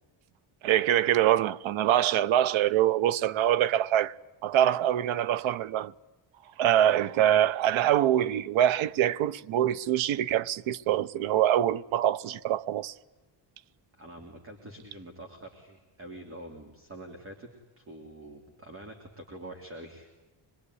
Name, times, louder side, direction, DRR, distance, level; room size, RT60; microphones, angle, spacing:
voice 1, 0.6-4.1 4.4-5.9 6.6-12.9, right 11 dB, 85° right, 0.9 m, -24 dB
voice 2, 14.0-17.5 17.8-20.1, right 1 dB, 30° right, 3.0 m, -45 dB
26.0 x 21.5 x 9.6 m
cardioid pair, 170°, 46 cm